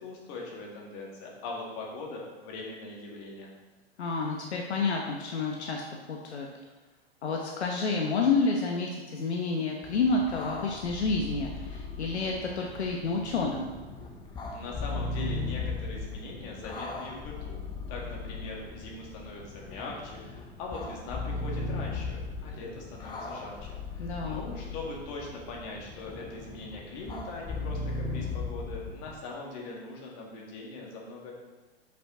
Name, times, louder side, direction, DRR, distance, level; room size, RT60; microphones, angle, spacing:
voice 1, 0.0-3.5 14.5-17.6 17.9-31.3, left 3 dB, 35° left, -2 dB, 1.9 m, -41 dB
voice 2, 4.0-5.8 6.1-6.5 7.2-13.7 24.0-24.4, left 4 dB, 75° left, 1 dB, 1.0 m, -29 dB
sound 1, 9.8-29.1, left 3 dB, 10° left, 0.7 m, -38 dB
6.2 x 5.9 x 3.8 m, 1.2 s
hypercardioid pair, 125°, 34 cm